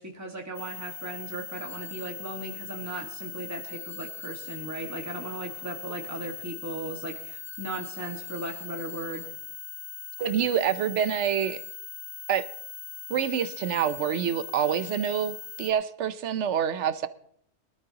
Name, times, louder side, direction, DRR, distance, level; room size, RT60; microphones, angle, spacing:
voice 1, 0.0-9.2, right 2 dB, 15° right, 1.6 m, -37 dB
sound 1, 0.5-15.7, left 6 dB, 35° left, 1.3 m, -41 dB
voice 2, 10.2-11.6 12.3-12.5 13.1-17.1, right 8 dB, 75° right, 1.0 m, -27 dB
23.0 x 12.5 x 2.9 m
omnidirectional pair, 1.2 m